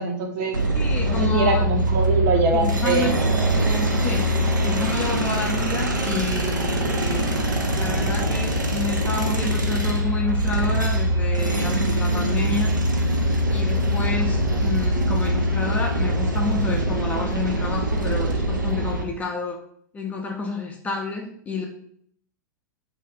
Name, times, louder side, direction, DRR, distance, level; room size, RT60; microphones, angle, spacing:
voice 1, 0.0-0.6 1.0-3.2, right 3 dB, 40° right, 3 dB, 0.7 m, -23 dB
sound 1, 0.5-19.0, equal, 80° right, 0.5 m, -23 dB
voice 2, 0.7-1.7 2.5-3.1 3.5-4.2 4.6-7.3 7.7-12.7 13.5-19.6 19.9-21.7, left 3 dB, 15° left, 1 dB, 0.5 m, -29 dB
3.4 x 2.3 x 3.6 m, 0.64 s
figure-of-eight pair, 95°, 10 cm